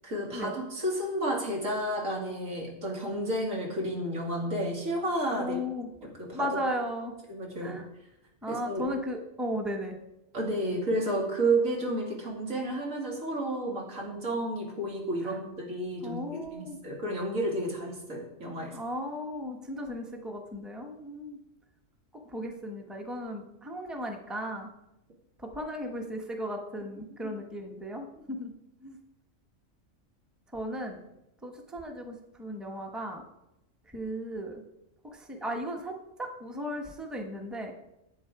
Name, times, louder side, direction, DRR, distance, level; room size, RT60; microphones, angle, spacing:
voice 1, 0.0-5.6 6.0-6.5 7.3-7.8 8.5-8.8 10.3-18.8, right 1 dB, 90° right, -1 dB, 2.8 m, -31 dB
voice 2, 5.4-5.9 6.3-7.1 7.6-7.8 8.4-10.0 15.2-15.4 16.0-16.8 18.7-21.4 22.1-24.7 25.4-28.5 28.8-29.0 30.5-31.0 31.4-33.2 33.9-34.6 35.0-37.7, equal, ahead, 2 dB, 1.0 m, -36 dB
11.0 x 8.0 x 4.8 m, 0.88 s
omnidirectional pair, 1.3 m